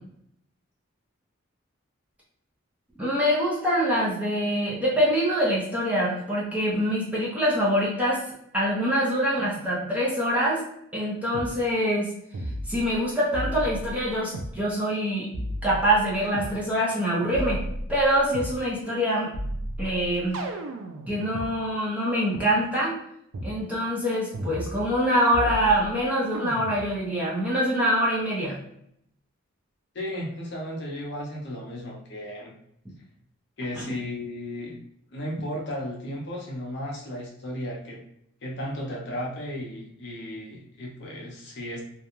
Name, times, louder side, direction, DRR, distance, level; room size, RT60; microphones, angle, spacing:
voice 1, 3.0-8.2 8.5-10.6 10.9-12.1 12.7-15.3 15.6-17.6 17.9-19.3 19.8-20.4 21.1-23.0 23.4-28.6 33.7-33.9, equal, 5° right, -6 dB, 0.6 m, -24 dB
sound 1, 11.3-11.5 12.3-13.0 13.3-14.5 15.3-16.5 17.3-18.6 19.3-21.5 22.3-22.4 23.3-23.6 24.3-25.0 25.3-26.0 26.3-27.0, right 1 dB, 85° right, 0.4 m, -34 dB
voice 2, 29.9-32.5 33.6-34.8 35.1-38.0 38.4-41.8, left 1 dB, 55° left, -1 dB, 0.6 m, -34 dB
2.4 x 2.2 x 2.9 m, 0.73 s
head